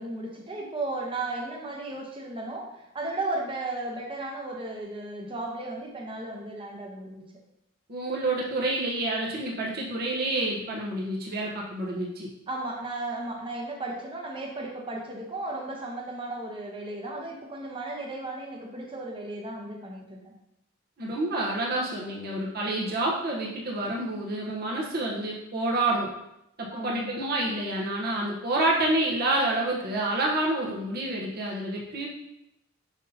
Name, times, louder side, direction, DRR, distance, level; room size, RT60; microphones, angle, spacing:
voice 1, 0.0-7.3 12.5-20.3 26.7-27.1, right 2 dB, 25° right, 0 dB, 0.9 m, -35 dB
voice 2, 7.9-12.3 21.0-26.1 26.6-32.1, right 2 dB, 50° right, -3 dB, 1.0 m, -28 dB
6.2 x 5.3 x 2.8 m, 0.84 s
head